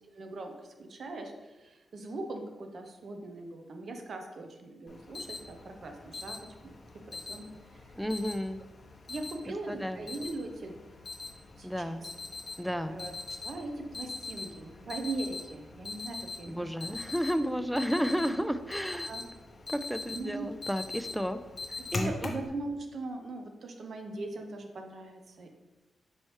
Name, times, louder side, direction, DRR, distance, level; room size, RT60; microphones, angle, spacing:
voice 1, 0.1-0.5 0.8-6.4 7.1-7.4 7.7-7.9 9.1-10.8 11.6-12.1 12.9-16.9 19.1-19.2 20.1-20.5 21.9-25.5, right 2 dB, 60° right, 4 dB, 0.6 m, -40 dB
Alarm, 4.9-22.5, left 3 dB, 45° left, 0.7 m, -42 dB
voice 2, 8.0-8.6 9.7-10.0 11.6-12.0 12.6-13.0 16.5-19.1 19.7-21.4 21.9-22.3, equal, ahead, 10 dB, 0.3 m, -32 dB
5.4 x 3.1 x 3.1 m, 1.1 s
cardioid pair, 65°, 0 cm